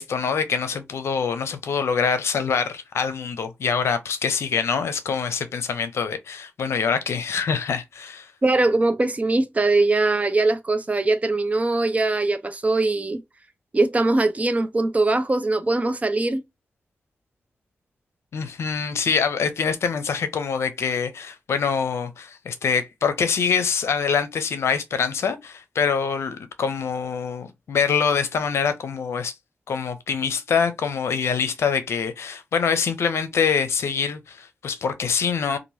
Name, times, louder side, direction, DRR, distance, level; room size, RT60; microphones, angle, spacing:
voice 1, 0.0-8.3 18.3-29.3 29.7-35.6, left 6 dB, 80° left, 0.5 m, -25 dB
voice 2, 8.4-13.2 13.7-16.4, right 2 dB, 30° right, 0.6 m, -21 dB
2.9 x 2.5 x 2.7 m
cardioid pair, 55°, 4 cm